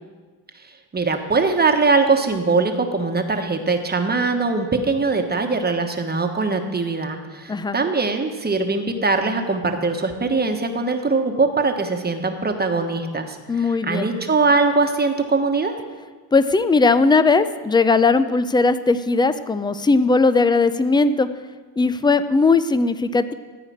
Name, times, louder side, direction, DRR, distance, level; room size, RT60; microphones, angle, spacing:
voice 1, 0.6-15.8, right 3 dB, 20° right, 5 dB, 1.3 m, -21 dB
voice 2, 13.5-14.1 16.3-21.3 21.8-23.3, left 3 dB, 10° left, 13 dB, 0.4 m, -18 dB
14.5 x 4.9 x 8.6 m, 1.4 s
cardioid pair, 100°, 45 cm